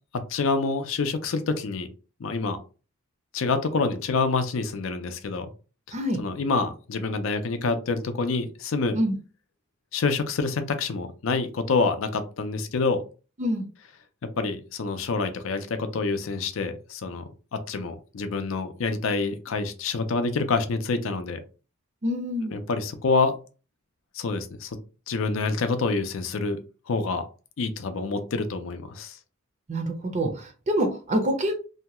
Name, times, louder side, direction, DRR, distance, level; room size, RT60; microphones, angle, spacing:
voice 1, 0.3-1.9 2.2-2.6 3.3-5.5 6.2-9.0 9.9-13.0 14.4-21.4 22.5-23.3 24.1-24.8 25.1-26.6 26.9-27.3 27.6-29.2, left 4 dB, 65° left, 8 dB, 0.5 m, -27 dB
voice 2, 22.0-22.6 29.7-31.7, equal, 35° right, 4 dB, 0.5 m, -26 dB
2.7 x 2.2 x 2.9 m, 0.35 s
head